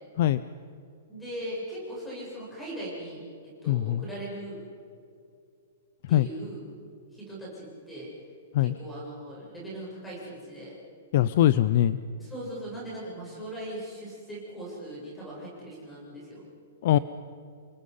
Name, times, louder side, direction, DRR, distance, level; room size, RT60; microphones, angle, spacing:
voice 1, 1.1-4.6 6.1-6.6 7.1-8.1 8.6-10.7 12.2-16.4, right 1 dB, 5° left, -6 dB, 7.8 m, -39 dB
voice 2, 3.7-4.0 6.1-6.3 8.5-8.8 11.1-12.0 16.8-17.0, left 12 dB, 40° left, 15 dB, 0.5 m, -22 dB
30.0 x 23.5 x 5.6 m, 2.5 s
hypercardioid pair, 180°, 0 cm